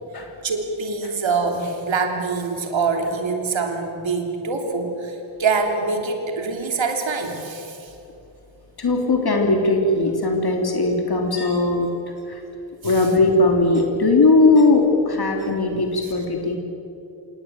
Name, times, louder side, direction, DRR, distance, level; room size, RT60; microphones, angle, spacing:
voice 1, 0.4-7.9 12.8-13.0, right 4 dB, 80° right, 4 dB, 3.2 m, -25 dB
voice 2, 8.8-11.9 12.2-12.4 12.8-16.6, left 2 dB, 55° left, 3 dB, 3.0 m, -19 dB
27.0 x 18.5 x 8.9 m, 2.8 s
wide cardioid pair, 115°, 45 cm